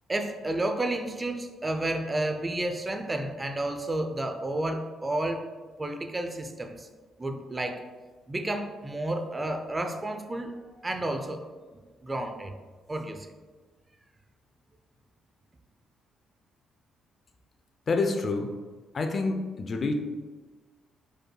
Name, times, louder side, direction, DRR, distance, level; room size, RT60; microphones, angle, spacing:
voice 1, 0.1-5.5 5.8-6.9 7.2-7.8 8.3-10.5 10.8-11.4 12.0-12.5 12.9-13.3, right 1 dB, 20° right, 5 dB, 0.5 m, -31 dB
voice 2, 17.9-18.5 18.9-19.9, left 3 dB, 45° left, 5 dB, 0.5 m, -27 dB
5.0 x 4.6 x 2.3 m, 1.4 s
cardioid pair, 90°, 0 cm